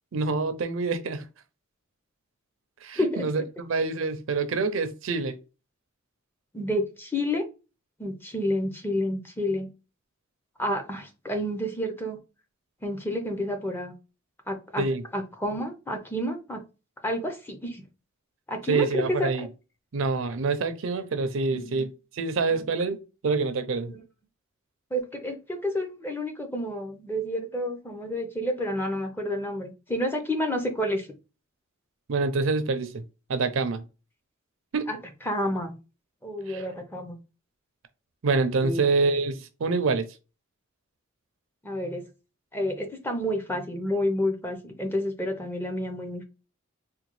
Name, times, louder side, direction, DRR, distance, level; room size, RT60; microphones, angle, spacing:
voice 1, 0.1-1.2 2.8-5.4 14.8-15.0 18.7-19.5 19.9-21.9 22.1-23.0 23.2-23.9 32.1-33.0 33.3-33.9 34.7-34.9 36.5-36.6 38.2-40.1, right 4 dB, 65° right, 0.5 m, -26 dB
voice 2, 3.0-3.3 6.5-7.4 8.0-9.7 10.6-12.2 12.8-14.0 14.5-14.8 15.1-16.6 17.0-17.8 18.5-19.5 21.5-21.9 22.5-22.6 23.9-24.0 24.9-31.1 34.9-35.0 35.3-35.7 36.2-37.2 38.6-38.9 41.6-42.0 42.5-46.2, left 1 dB, 10° left, 0.6 m, -29 dB
3.7 x 2.3 x 3.0 m
head